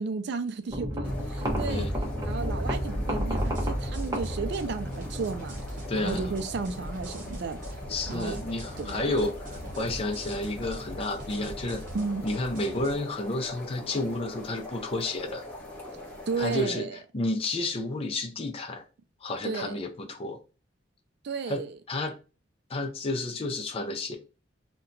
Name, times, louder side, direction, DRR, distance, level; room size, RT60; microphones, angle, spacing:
voice 1, 0.0-1.9 2.2-5.6 5.9-7.6 8.1-8.4 8.8-9.1 11.9-12.2 16.3-17.0 19.4-19.8 21.2-21.8, right 4 dB, 65° right, 0.4 m, -33 dB
sound 1, 0.7-12.0, equal, 20° right, 0.7 m, -34 dB
sound 2, 1.0-16.6, left 2 dB, 10° left, 1.1 m, -43 dB
sound 3, 3.4-12.9, equal, 45° right, 0.9 m, -45 dB
voice 2, 5.9-6.2 7.9-11.8 12.2-15.4 16.4-16.9 17.1-18.8 19.2-20.4 21.5-22.2 22.7-24.2, left 2 dB, 30° left, 0.4 m, -31 dB
2.8 x 2.2 x 3.7 m
head